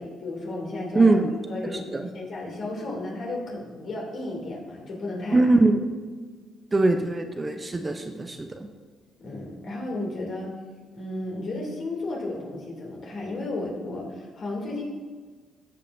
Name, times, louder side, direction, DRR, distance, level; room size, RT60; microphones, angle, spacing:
voice 1, 0.0-1.1 1.5-5.5 9.2-10.5 10.9-14.8, left 2 dB, 60° left, -1 dB, 2.7 m, -33 dB
voice 2, 0.9-1.3 1.9-2.0 5.3-5.8 6.7-8.5, right 2 dB, 25° right, 6 dB, 0.7 m, -21 dB
15.5 x 5.6 x 2.7 m, 1.4 s
cardioid pair, 90°, 0 cm